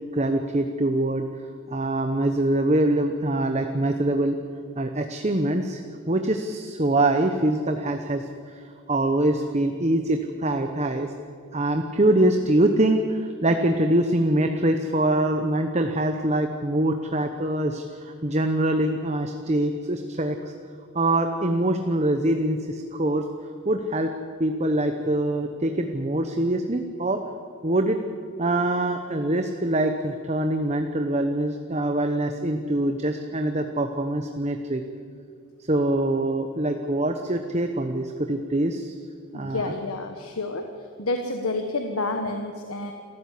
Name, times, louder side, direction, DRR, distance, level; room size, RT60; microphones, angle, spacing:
voice 1, 0.1-1.3 1.7-4.4 4.8-5.8 6.1-11.1 11.5-20.4 20.9-23.2 23.6-24.1 24.4-27.2 27.6-28.0 28.4-34.8 35.7-38.9 39.3-39.7, right 1 dB, 30° right, 6 dB, 1.0 m, -24 dB
voice 2, 39.3-40.7 41.0-42.9, left 2 dB, 80° left, 5 dB, 1.5 m, -29 dB
28.0 x 14.5 x 8.4 m, 2.2 s
head